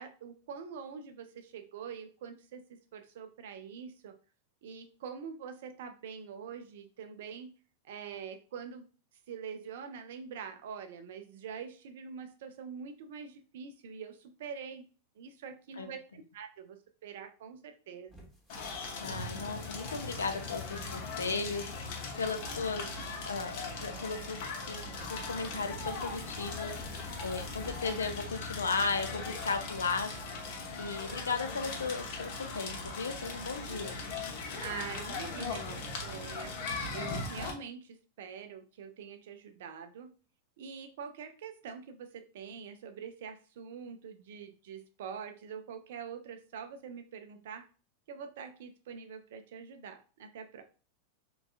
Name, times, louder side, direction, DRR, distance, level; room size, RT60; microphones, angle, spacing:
voice 1, 0.0-4.2 4.6-7.5 7.8-8.9 9.3-14.9 15.2-18.3 34.6-36.5 36.9-40.1 40.6-47.6 48.1-50.6, right 6 dB, 55° right, 8 dB, 0.4 m, -45 dB
sound 1, 18.1-28.7, equal, ahead, 0.9 m, -52 dB
Crackle, 18.5-37.5, left 3 dB, 50° left, 0.7 m, -39 dB
voice 2, 19.0-30.1 30.4-34.0, left 4 dB, 70° left, 8 dB, 0.4 m, -36 dB
3.5 x 2.3 x 2.4 m, 0.37 s
figure-of-eight pair, 90°, 0 cm